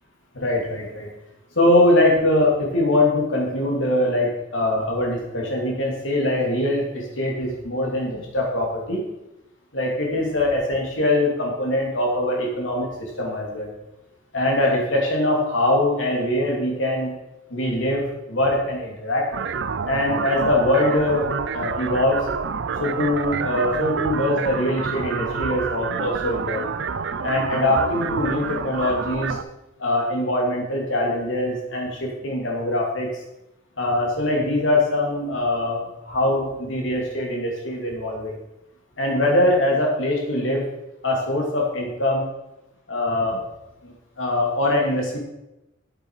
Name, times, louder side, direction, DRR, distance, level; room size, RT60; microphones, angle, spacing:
voice 1, 0.3-1.1 1.5-9.0 9.7-13.7 14.3-17.2 17.5-19.3 19.9-21.3 21.5-22.2 22.8-26.7 27.2-29.4 29.8-33.1 33.8-38.3 39.0-40.6 41.0-42.3 42.9-43.4 43.8-45.2, left 1 dB, 80° left, -1 dB, 2.9 m, -22 dB
sound 1, 19.3-29.4, right 5 dB, 65° right, 0.5 m, -28 dB
8.5 x 7.9 x 4.8 m, 0.93 s
head